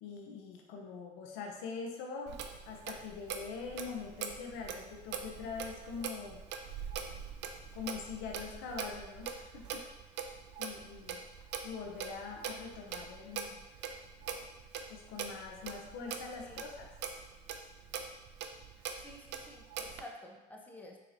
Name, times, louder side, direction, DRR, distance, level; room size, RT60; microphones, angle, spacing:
voice 1, 0.0-2.4 2.7-6.4 7.7-9.8 10.3-10.4 10.6-11.2 11.6-13.6 14.9-16.9, left 5 dB, 80° left, 1 dB, 0.5 m, -43 dB
Clock, 2.3-20.0, right 7 dB, 65° right, 0.4 m, -43 dB
voice 2, 19.0-21.0, left 1 dB, 10° left, 0 dB, 0.7 m, -51 dB
3.9 x 2.9 x 2.5 m, 1.0 s
supercardioid pair, 65°, 20 cm